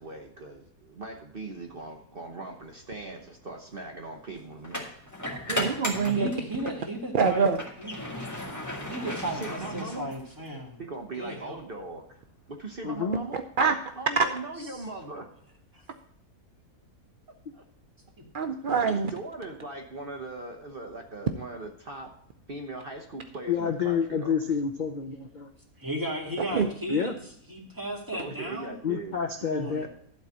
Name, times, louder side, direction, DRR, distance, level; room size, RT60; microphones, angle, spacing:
voice 1, 0.0-4.9 9.0-10.1 10.8-12.2 12.5-13.4 13.9-15.3 17.5-17.6 18.8-22.1 22.5-24.3 27.0-27.2 28.1-29.2 29.7-29.9, right 2 dB, 40° right, 3 dB, 1.0 m, -40 dB
sound 1, 2.6-2.8 4.6-6.8 7.3-10.5, left 1 dB, 10° left, 1.8 m, -35 dB
voice 2, 5.5-6.3 7.1-7.6 13.6-13.8 18.3-19.1 26.5-26.7, right 5 dB, 75° right, 6 dB, 0.4 m, -24 dB
voice 3, 6.0-7.5 7.8-8.0 8.9-10.8 11.2-11.6 15.7-15.8 18.2-18.3 25.8-27.1 27.5-28.7 29.4-29.9, right 1 dB, 15° right, -1 dB, 1.8 m, -35 dB
voice 4, 12.8-13.2 23.5-25.5 26.9-27.1 28.8-29.9, left 6 dB, 45° left, 4 dB, 0.6 m, -28 dB
12.0 x 4.1 x 7.4 m, 0.64 s
omnidirectional pair, 1.7 m